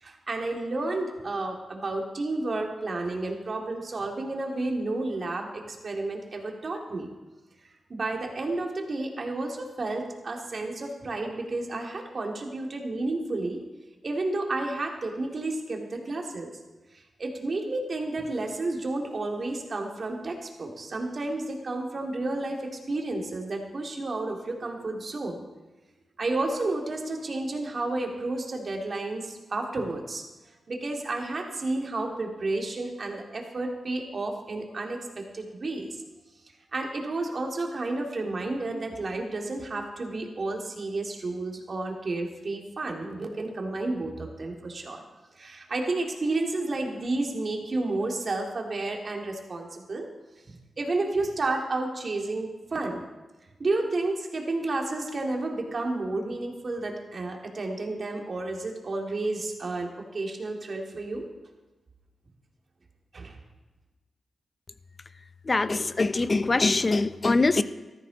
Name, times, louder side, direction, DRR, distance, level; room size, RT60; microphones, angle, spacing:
voice 1, 0.0-7.1 7.9-13.6 14.0-16.5 17.2-22.6 22.9-25.4 26.2-30.2 30.7-36.0 36.7-45.0 45.4-50.1 50.5-53.0 53.6-61.3 63.1-63.4, right 2 dB, 55° right, 1 dB, 2.6 m, -31 dB
voice 2, 65.4-67.6, left 3 dB, 40° left, 13 dB, 0.7 m, -23 dB
14.0 x 14.0 x 4.0 m, 1.1 s
cardioid pair, 50°, 0 cm